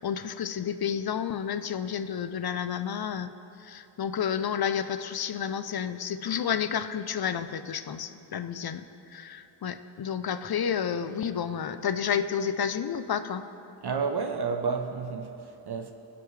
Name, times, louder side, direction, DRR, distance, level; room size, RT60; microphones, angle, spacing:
voice 1, 0.0-3.3 3.6-13.4, left 8 dB, 50° left, 0.6 m, -30 dB
voice 2, 13.8-15.9, right 5 dB, 55° right, 0.8 m, -31 dB
16.0 x 7.0 x 3.2 m
cardioid pair, 45°, 47 cm